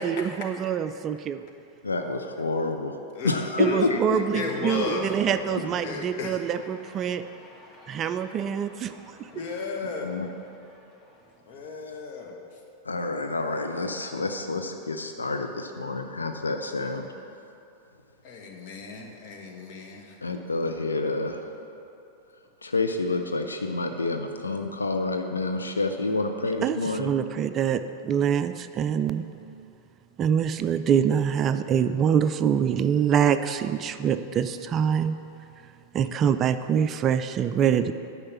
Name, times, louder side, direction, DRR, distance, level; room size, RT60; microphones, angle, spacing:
voice 1, 0.0-1.4 3.6-7.2 7.9-8.9 26.6-29.2 30.2-35.2 35.9-37.9, right 8 dB, 30° right, 10 dB, 0.3 m, -25 dB
voice 2, 1.8-3.0 3.2-4.2 5.5-5.6 9.8-10.3 11.9-12.0 12.8-17.1 20.2-21.4 22.6-27.1 27.6-27.7, left 3 dB, 75° left, 5 dB, 0.5 m, -28 dB
voice 3, 3.6-4.0 4.3-5.4 5.8-6.4 9.3-10.1 11.5-12.4 18.2-20.2, left 4 dB, 45° left, 1 dB, 1.4 m, -34 dB
Cheering, 4.3-11.3, left 1 dB, 20° left, 1.4 m, -46 dB
9.9 x 5.7 x 7.0 m, 2.8 s
figure-of-eight pair, 90°, 0 cm